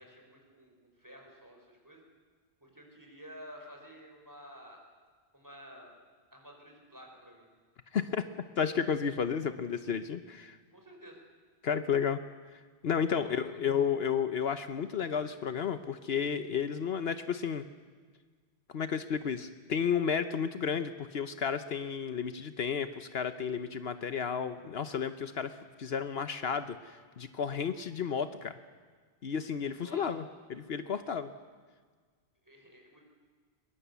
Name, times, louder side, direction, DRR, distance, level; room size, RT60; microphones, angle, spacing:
voice 1, 0.0-2.0 2.6-4.8 5.3-5.9 6.3-7.5 10.7-11.2 13.1-13.6 29.8-30.1 32.4-33.0, equal, 15° right, 1 dB, 5.1 m, -51 dB
voice 2, 7.9-8.2 8.6-10.6 11.6-12.2 12.8-17.6 18.7-28.5 29.2-30.2 30.5-31.3, left 7 dB, 65° left, 11 dB, 1.1 m, -32 dB
22.5 x 21.5 x 8.2 m, 1.5 s
omnidirectional pair, 1.1 m